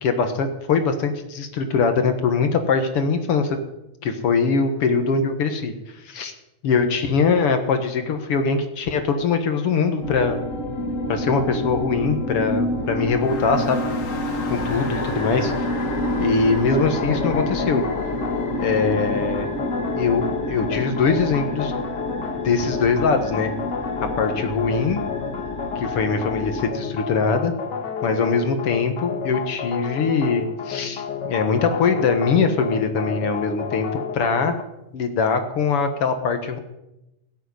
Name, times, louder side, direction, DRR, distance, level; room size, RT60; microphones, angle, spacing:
voice 1, 0.0-3.6 4.0-5.7 6.1-6.3 6.6-10.4 11.1-13.9 14.5-15.7 16.2-17.8 18.6-19.5 20.0-21.7 22.4-23.5 24.2-25.0 25.8-27.5 28.0-33.9 34.1-34.5 34.9-36.6, left 5 dB, 55° left, 7 dB, 1.9 m, -22 dB
sound 1, 10.0-26.7, left 1 dB, 35° left, 1.4 m, -28 dB
sound 2, 16.7-34.6, left 6 dB, 70° left, 0.9 m, -31 dB
17.5 x 8.6 x 9.7 m, 0.93 s
omnidirectional pair, 3.7 m